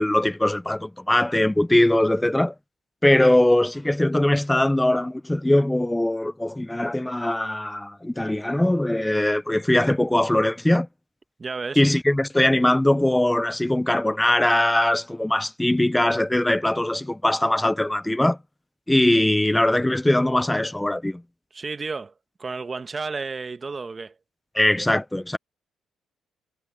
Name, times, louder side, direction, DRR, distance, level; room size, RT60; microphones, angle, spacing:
voice 1, 0.0-2.5 3.0-10.9 11.8-18.4 18.9-21.2 24.5-25.4, left 1 dB, 10° left, 0.8 m, -21 dB
voice 2, 11.4-11.8 21.5-22.1 22.4-24.2, right 4 dB, 30° right, 1.3 m, -32 dB
cardioid pair, 90°, 0 cm